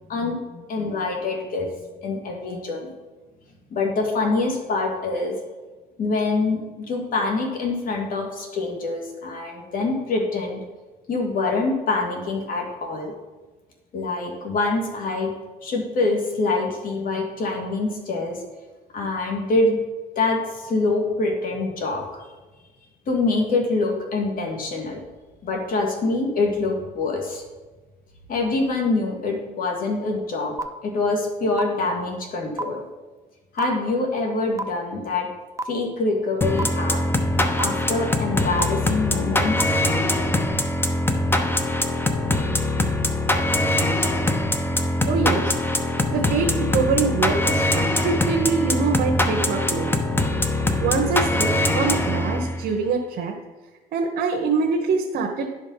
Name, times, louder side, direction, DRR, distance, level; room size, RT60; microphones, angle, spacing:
voice 1, 0.1-1.7 2.0-2.9 3.7-5.4 6.0-10.6 11.1-13.1 13.9-15.3 15.6-18.4 18.9-19.8 20.2-22.2 23.1-25.0 25.4-27.4 28.3-30.5 30.8-32.8 33.5-35.3 35.7-37.0 37.6-39.7, left 3 dB, 55° left, 1 dB, 2.2 m, -25 dB
sound 1, 30.6-30.7 31.6-31.7 32.6-32.7 33.6-33.7 34.6-34.7 35.6-35.7 36.6-36.7 37.6-37.7 38.6-38.7 39.6-39.7, right 2 dB, 15° right, 0.6 m, -26 dB
sound 2, 36.4-52.7, left 1 dB, 15° left, 0.8 m, -22 dB
voice 2, 45.1-45.6 46.1-49.9 50.8-53.3 53.9-55.5, right 5 dB, 65° right, 0 dB, 1.2 m, -24 dB
10.5 x 5.3 x 5.6 m, 1.2 s
cardioid pair, 110°, 17 cm